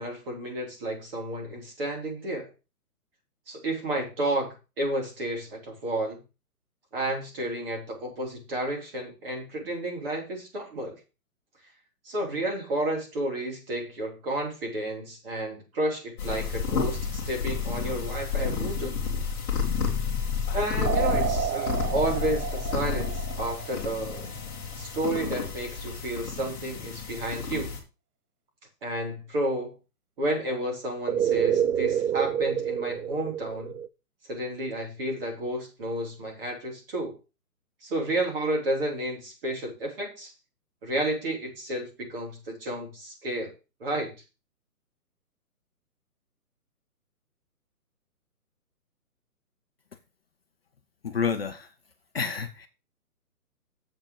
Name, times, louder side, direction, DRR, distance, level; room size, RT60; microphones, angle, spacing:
voice 1, 0.0-2.5 3.5-6.2 6.9-11.0 12.0-18.9 20.5-24.3 24.8-27.7 28.8-29.7 30.2-33.8 34.3-37.2 37.8-40.3 40.8-43.5 43.8-44.1, right 1 dB, 35° right, 3.3 m, -31 dB
sound 1, 16.2-27.8, left 5 dB, 10° left, 1.9 m, -31 dB
sound 2, 20.8-24.2 31.1-33.9, right 9 dB, 75° right, 0.7 m, -28 dB
voice 2, 51.0-51.7 52.1-52.7, left 6 dB, 40° left, 0.7 m, -29 dB
7.5 x 5.0 x 6.6 m
hypercardioid pair, 170°, 46 cm